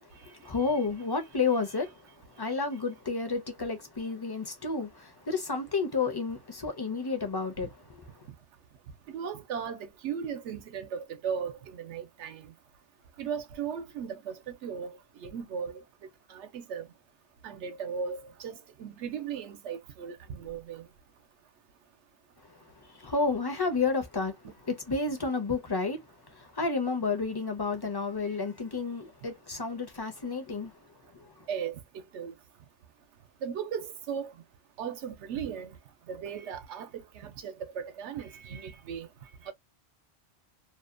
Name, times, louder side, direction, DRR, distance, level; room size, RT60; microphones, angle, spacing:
voice 1, 0.0-8.2 22.4-30.8 31.1-31.5, left 4 dB, 30° left, 0.4 m, -31 dB
voice 2, 9.1-12.5 13.2-15.8 16.3-16.9 17.4-20.9 31.5-31.8 32.1-32.3 33.4-34.3 34.8-35.8 36.1-39.1 39.4-39.5, right 7 dB, 80° right, 0.9 m, -37 dB
2.6 x 2.1 x 2.4 m
omnidirectional pair, 1.2 m